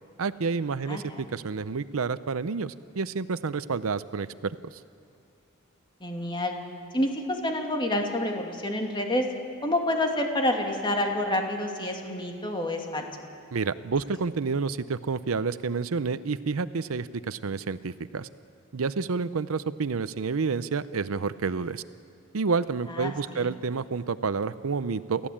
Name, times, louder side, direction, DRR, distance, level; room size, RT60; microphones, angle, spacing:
voice 1, 0.2-4.5 13.5-18.3 18.7-21.8 22.3-25.3, right 4 dB, 80° right, 15 dB, 0.6 m, -29 dB
voice 2, 0.9-1.2 6.0-6.5 6.9-9.3 9.6-13.0 22.9-23.5, left 1 dB, 25° left, 2 dB, 2.5 m, -28 dB
30.0 x 14.5 x 8.7 m, 2.4 s
head